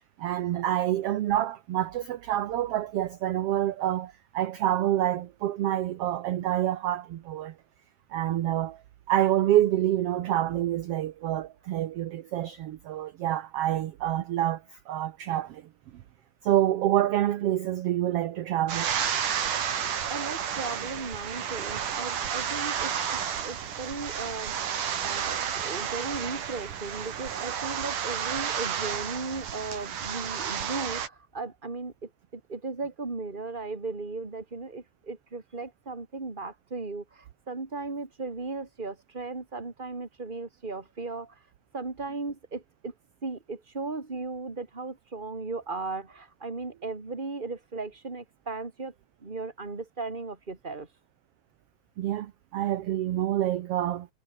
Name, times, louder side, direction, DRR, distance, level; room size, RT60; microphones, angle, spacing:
voice 1, 0.2-7.5 8.1-8.8 9.1-14.6 14.9-15.6 16.4-18.9 52.0-54.1, right 12 dB, 65° right, 1.7 m, -27 dB
sound 1, 18.7-31.1, right 8 dB, 90° right, 4.1 m, -31 dB
voice 2, 20.1-41.3 41.7-42.9 43.2-48.9 49.2-50.9, right 3 dB, 15° right, 2.9 m, -36 dB
omnidirectional pair, 3.5 m